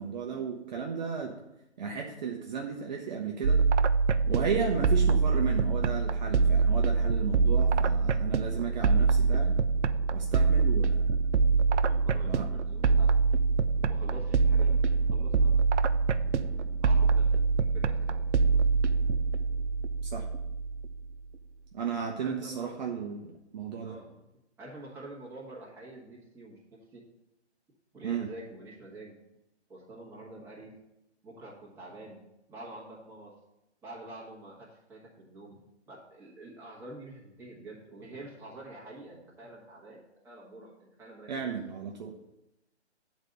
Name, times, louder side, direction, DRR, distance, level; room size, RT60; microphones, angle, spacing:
voice 1, 0.0-1.4 1.8-3.6 4.3-9.5 10.1-11.1 12.2-12.5 20.1-20.3 21.7-24.0 28.0-28.3 41.3-42.1, right 6 dB, 40° right, 1 dB, 0.8 m, -34 dB
sound 1, 3.4-21.0, right 4 dB, 85° right, 0.5 m, -25 dB
voice 2, 11.7-13.1 13.8-15.5 16.8-17.3 17.6-18.6 22.2-22.9 23.8-24.1 24.6-26.6 26.9-27.0 27.9-29.2 29.7-30.8 31.2-32.2 32.5-33.3 33.8-35.6 35.9-41.5, right 2 dB, 5° right, -6 dB, 1.4 m, -47 dB
8.0 x 4.1 x 6.6 m, 0.91 s
hypercardioid pair, 145°, 34 cm